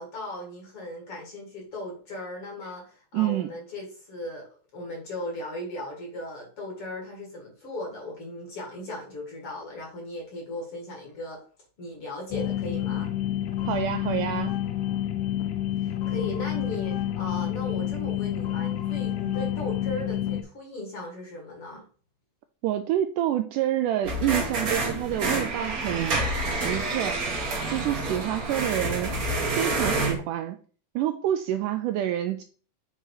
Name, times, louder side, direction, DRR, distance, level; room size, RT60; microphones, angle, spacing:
voice 1, 0.0-11.4 11.8-13.1 15.8-21.9, left 1 dB, 45° left, -1 dB, 2.5 m, -37 dB
voice 2, 3.1-3.5 13.7-14.5 22.6-26.2 26.5-27.4 27.7-29.1 29.6-30.6 31.0-32.4, right 12 dB, 80° right, 8 dB, 1.9 m, -28 dB
sound 1, 12.3-20.4, left 12 dB, 80° left, 1.7 m, -29 dB
sound 2, 24.0-30.1, right 2 dB, 65° right, 0.8 m, -28 dB
7.9 x 3.8 x 4.7 m, 0.41 s
omnidirectional pair, 4.0 m